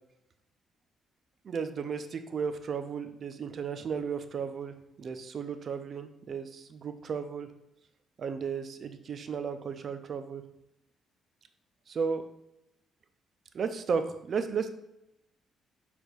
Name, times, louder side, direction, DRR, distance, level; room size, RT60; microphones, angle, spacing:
voice 1, 1.4-7.5 8.2-10.4 11.9-12.2 13.5-14.7, right 6 dB, 50° right, 9 dB, 0.4 m, -34 dB
6.1 x 3.4 x 2.4 m, 0.84 s
cardioid pair, 90°, 0 cm